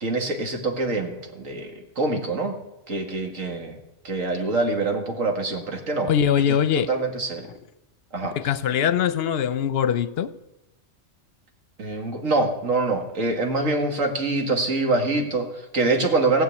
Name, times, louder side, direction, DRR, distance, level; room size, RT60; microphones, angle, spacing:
voice 1, 0.0-2.5 2.9-3.8 4.0-6.1 6.5-6.6 6.9-7.5 8.1-8.4 11.8-16.4, right 3 dB, 90° right, 4 dB, 2.2 m, -25 dB
voice 2, 6.1-6.9 7.5-7.6 8.3-10.3, left 8 dB, 60° left, 14 dB, 0.9 m, -22 dB
16.0 x 7.6 x 8.3 m, 0.92 s
omnidirectional pair, 1.3 m